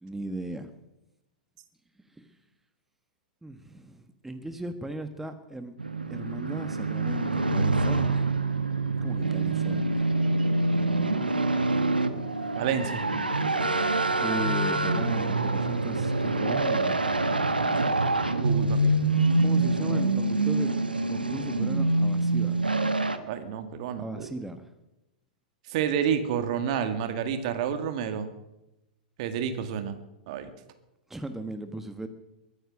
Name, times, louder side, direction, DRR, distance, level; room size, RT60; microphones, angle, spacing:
voice 1, 0.0-0.7 3.4-5.7 6.1-8.3 9.0-10.1 14.2-17.0 19.4-20.8 21.1-22.6 24.0-24.7 31.1-32.1, right 1 dB, 5° right, 8 dB, 1.3 m, -37 dB
sound 1, 5.8-23.2, right 2 dB, 85° right, 1.3 m, -26 dB
voice 2, 12.6-13.0 18.4-18.9 23.3-24.3 25.7-28.3 29.2-30.0 30.3-30.5, right 8 dB, 50° right, 8 dB, 2.0 m, -29 dB
22.5 x 9.7 x 6.4 m, 0.92 s
figure-of-eight pair, 100°, 5 cm